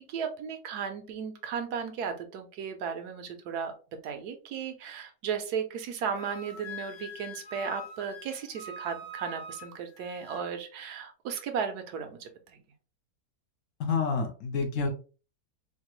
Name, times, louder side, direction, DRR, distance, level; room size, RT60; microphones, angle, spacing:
voice 1, 0.0-3.7 4.0-12.6, right 7 dB, 85° right, 6 dB, 1.2 m, -35 dB
Wind instrument woodwind instrument, 6.2-10.4, left 2 dB, 40° left, 0.6 m, -44 dB
voice 2, 13.8-14.9, left 4 dB, 65° left, 4 dB, 1.0 m, -28 dB
4.1 x 2.2 x 3.0 m, 0.35 s
omnidirectional pair, 1.6 m